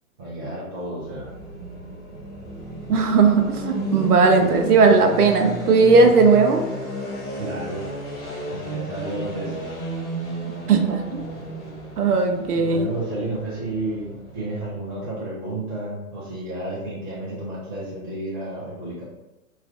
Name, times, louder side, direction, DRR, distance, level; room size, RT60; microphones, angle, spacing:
voice 1, 0.2-1.3 6.0-6.1 7.3-7.8 8.5-9.7 12.5-19.0, right 1 dB, 15° right, -8 dB, 0.3 m, -31 dB
sound 1, 1.0-14.9, right 1 dB, 30° left, 1.1 m, -33 dB
voice 2, 2.9-6.6 10.7-11.2 12.0-12.9, right 4 dB, 80° right, 4 dB, 0.6 m, -17 dB
3.2 x 2.3 x 2.4 m, 0.99 s
hypercardioid pair, 120°, 44 cm